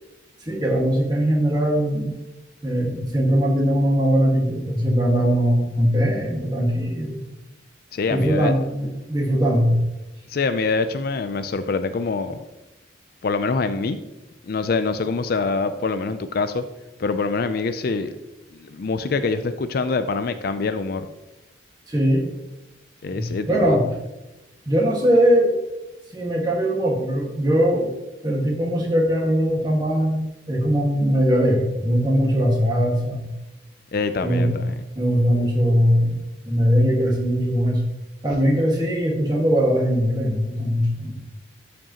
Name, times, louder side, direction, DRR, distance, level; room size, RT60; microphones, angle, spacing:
voice 1, 0.4-2.1 2.6-7.2 8.1-9.8 21.9-22.3 23.1-23.8 24.6-25.5 26.1-27.9 28.2-33.3 34.2-34.5 34.9-36.2 36.4-37.8 38.2-41.1, equal, 20° right, -3 dB, 1.6 m, -20 dB
voice 2, 7.9-8.5 10.3-12.4 13.2-14.0 14.5-16.6 17.0-18.1 18.6-21.1 23.0-23.8 33.9-34.8, left 4 dB, 50° left, 10 dB, 0.4 m, -25 dB
12.0 x 5.2 x 2.9 m, 0.99 s
head